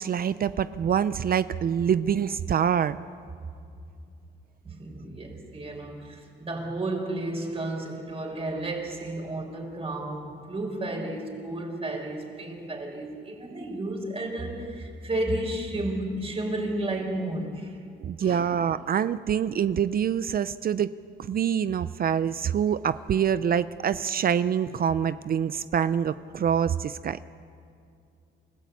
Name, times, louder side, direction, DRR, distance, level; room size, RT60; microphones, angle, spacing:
voice 1, 0.0-3.0 18.0-20.9 21.2-27.2, right 8 dB, 50° right, 0.5 m, -25 dB
voice 2, 4.6-17.8 18.2-18.5, right 1 dB, 30° right, 4.9 m, -32 dB
28.5 x 14.5 x 8.4 m
cardioid pair, 90°, 20 cm